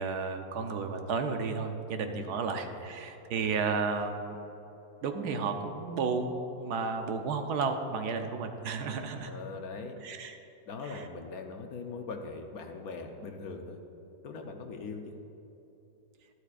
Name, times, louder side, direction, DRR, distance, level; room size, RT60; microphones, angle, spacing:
voice 1, 0.0-4.4 5.0-9.3 10.0-10.4 10.9-11.0, right 4 dB, 70° right, 6 dB, 1.2 m, -32 dB
voice 2, 2.1-2.8 9.3-10.0 10.7-13.8 14.2-15.2, left 4 dB, 65° left, 4 dB, 1.1 m, -41 dB
12.5 x 12.5 x 2.5 m, 2.9 s
omnidirectional pair, 1.8 m